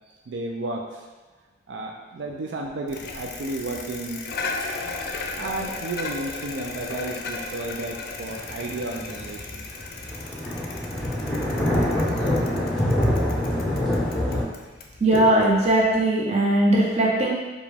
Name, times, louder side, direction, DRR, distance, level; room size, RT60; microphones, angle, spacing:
voice 1, 0.3-1.1 1.7-4.6 5.4-9.6, right 2 dB, 85° right, 1 dB, 0.4 m, -33 dB
Bicycle, 2.9-16.0, left 3 dB, 60° left, 0.4 m, -36 dB
sound 1, 8.2-14.4, left 1 dB, ahead, 0.7 m, -25 dB
voice 2, 15.0-17.3, right 1 dB, 35° right, -3 dB, 0.8 m, -19 dB
4.8 x 2.2 x 3.4 m, 1.3 s
head